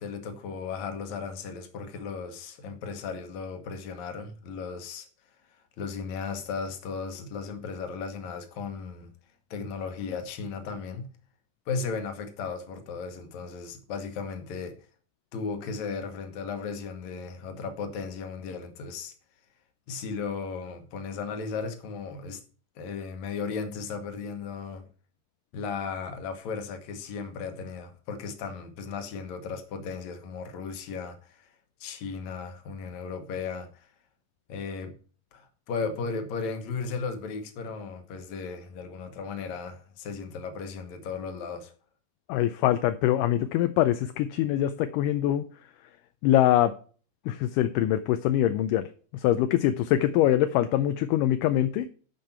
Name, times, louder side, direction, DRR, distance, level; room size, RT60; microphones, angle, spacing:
voice 1, 0.0-5.1 5.8-9.1 9.5-11.1 11.7-14.8 15.3-19.1 19.9-22.4 22.8-24.9 25.5-31.5 31.8-33.9 34.5-34.9 35.3-41.7, left 5 dB, 60° left, 2.4 m, -35 dB
voice 2, 42.3-45.4 46.2-46.7 47.3-48.9 49.1-51.9, left 12 dB, 80° left, 2.1 m, -23 dB
12.0 x 5.2 x 4.4 m
omnidirectional pair, 4.0 m